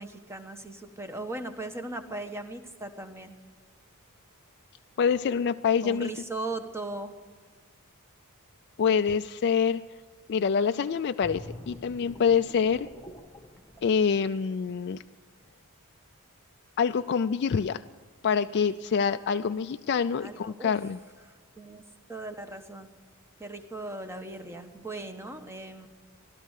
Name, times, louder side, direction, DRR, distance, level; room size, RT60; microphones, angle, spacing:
voice 1, 0.0-3.3 5.8-7.2 20.2-20.7 21.6-21.8 22.1-22.9 23.4-25.9, right 2 dB, 10° right, 7 dB, 1.2 m, -38 dB
voice 2, 5.0-6.1 8.8-9.8 10.3-12.9 13.8-15.0 16.8-17.8 18.2-21.0, left 6 dB, 50° left, 8 dB, 0.4 m, -26 dB
sound 1, 11.2-14.8 15.2-15.4, left 1 dB, 5° left, 1.4 m, -46 dB
17.0 x 12.5 x 6.5 m, 1.5 s
head